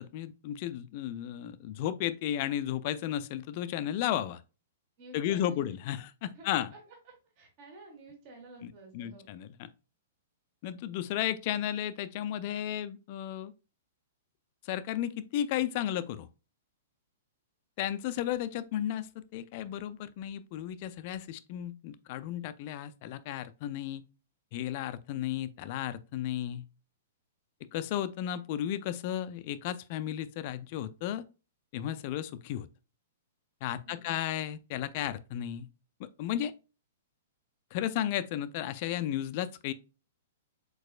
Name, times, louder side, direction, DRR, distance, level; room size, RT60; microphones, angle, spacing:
voice 1, 0.0-4.4 5.1-6.7 8.6-9.7 10.6-13.5 14.6-16.3 17.8-24.0 24.5-26.7 27.7-31.2 31.7-32.7 33.6-35.7 36.0-36.5 37.7-39.7, left 11 dB, 45° left, 0.3 m, -34 dB
voice 2, 5.0-5.7 6.3-9.3 33.8-34.2, right 2 dB, 40° right, 1.4 m, -52 dB
4.6 x 4.0 x 2.3 m
figure-of-eight pair, 110°, 0 cm